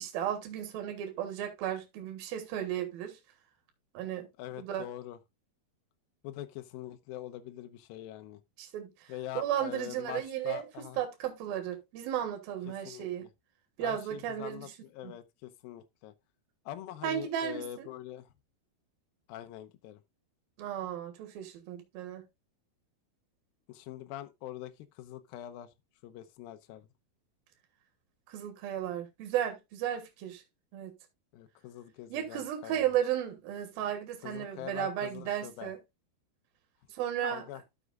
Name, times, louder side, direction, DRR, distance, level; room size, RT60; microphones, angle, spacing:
voice 1, 0.0-3.2 3.9-4.3 4.6-4.9 8.6-8.9 9.3-10.7 11.0-13.3 13.8-14.7 15.0-15.1 17.0-17.9 20.6-22.2 28.3-30.4 30.7-30.9 32.1-35.8 36.9-37.4, right 10 dB, 70° right, 3.1 m, -34 dB
voice 2, 4.4-5.2 6.2-8.4 9.1-11.1 12.7-13.3 13.8-16.1 16.7-18.3 19.3-20.0 23.7-25.7 26.0-26.9 31.3-32.8 34.2-35.7 37.2-37.6, left 13 dB, 75° left, 2.4 m, -44 dB
13.0 x 6.1 x 2.4 m
omnidirectional pair, 4.6 m